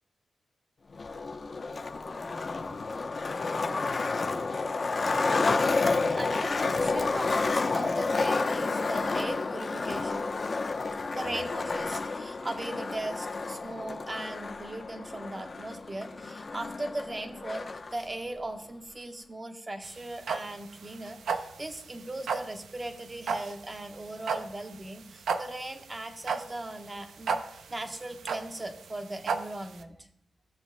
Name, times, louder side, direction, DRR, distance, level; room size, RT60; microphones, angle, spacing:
Skateboard, 0.9-17.9, left 3 dB, 45° left, 0.8 m, -30 dB
voice 1, 5.9-10.3 11.1-27.3 27.7-30.0, right 2 dB, 25° right, 6 dB, 1.1 m, -39 dB
sound 1, 19.8-29.8, right 5 dB, 80° right, 0.6 m, -34 dB
15.0 x 7.0 x 2.2 m, 0.75 s
cardioid pair, 60°, 0 cm